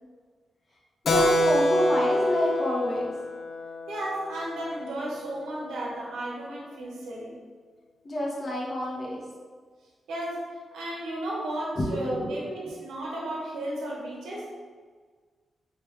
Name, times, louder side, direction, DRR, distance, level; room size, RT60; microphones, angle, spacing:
voice 1, 1.0-3.1 8.0-9.2 11.8-12.3, equal, 40° left, -4 dB, 1.2 m, -28 dB
Keyboard (musical), 1.1-5.1, left 1 dB, 65° left, 0.4 m, -26 dB
voice 2, 3.9-7.4 10.1-14.5, right 1 dB, 85° right, -3 dB, 0.9 m, -34 dB
3.3 x 3.2 x 3.1 m, 1.5 s
cardioid pair, 55°, 0 cm